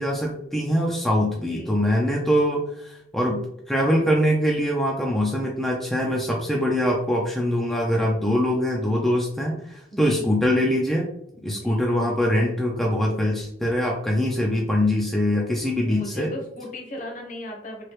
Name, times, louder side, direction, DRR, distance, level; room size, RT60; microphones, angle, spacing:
voice 1, 0.0-3.4 3.7-11.1 11.4-16.3, equal, ahead, -2 dB, 0.3 m, -23 dB
voice 2, 9.9-10.3 11.5-11.9 15.9-17.9, left 1 dB, 40° left, 1 dB, 0.8 m, -37 dB
3.1 x 2.8 x 3.0 m, 0.75 s
head